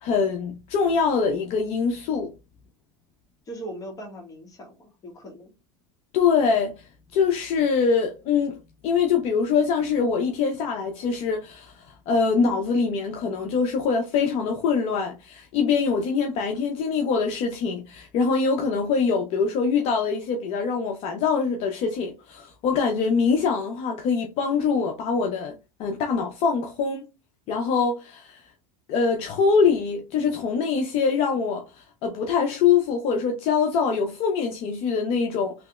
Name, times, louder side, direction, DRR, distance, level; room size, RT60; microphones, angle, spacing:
voice 1, 0.0-2.3 6.1-8.6 8.8-25.5 25.8-27.0 27.5-28.4 28.9-35.5, left 5 dB, 55° left, 0.6 m, -24 dB
voice 2, 3.5-5.5, right 1 dB, 30° left, 1.4 m, -39 dB
3.3 x 2.9 x 2.3 m
supercardioid pair, 105°, 13 cm